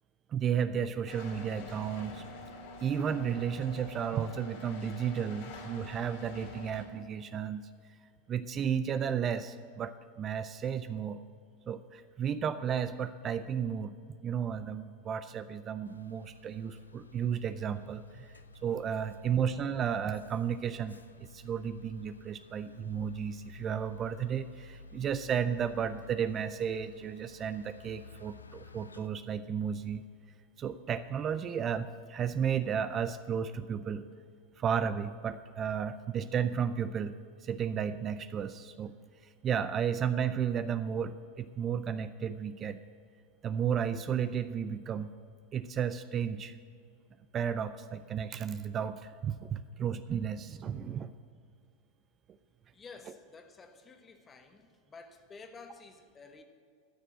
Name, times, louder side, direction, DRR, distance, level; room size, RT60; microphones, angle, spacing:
voice 1, 0.3-2.2 2.8-7.7 8.3-11.2 11.7-13.9 14.2-21.0 21.3-30.0 30.6-34.0 34.6-37.1 37.4-38.9 39.2-42.8 43.4-45.1 45.5-46.6 47.3-51.1, right 8 dB, 35° right, 12 dB, 0.4 m, -33 dB
sound 1, 1.1-6.8, left 2 dB, 65° left, 2.3 m, -46 dB
sound 2, 15.8-29.1, left 4 dB, 85° left, 0.4 m, -53 dB
voice 2, 52.7-56.4, left 4 dB, 25° left, 6 dB, 1.3 m, -52 dB
12.5 x 6.7 x 7.5 m, 2.1 s
figure-of-eight pair, 90°, 0 cm